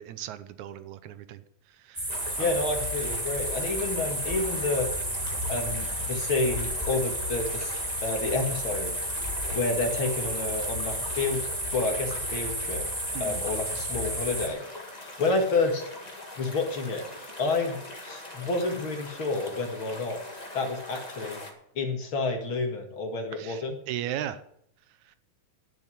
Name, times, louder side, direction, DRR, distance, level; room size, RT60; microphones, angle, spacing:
voice 1, 0.0-1.4 1.8-2.5 13.1-13.4 23.3-24.4, right 11 dB, 85° right, 11 dB, 2.3 m, -37 dB
sound 1, 1.9-14.5, equal, 10° right, 1.5 m, -32 dB
sound 2, 2.1-21.5, left 1 dB, 20° left, 1.4 m, -42 dB
voice 2, 2.4-4.9 5.5-7.7 8.0-8.9 9.5-11.4 11.7-12.9 13.2-14.6 15.2-15.8 16.4-17.1 17.4-20.2 20.5-21.4 21.8-23.8, left 3 dB, 45° left, 3 dB, 2.5 m, -29 dB
11.0 x 7.7 x 8.5 m, 0.71 s
omnidirectional pair, 3.3 m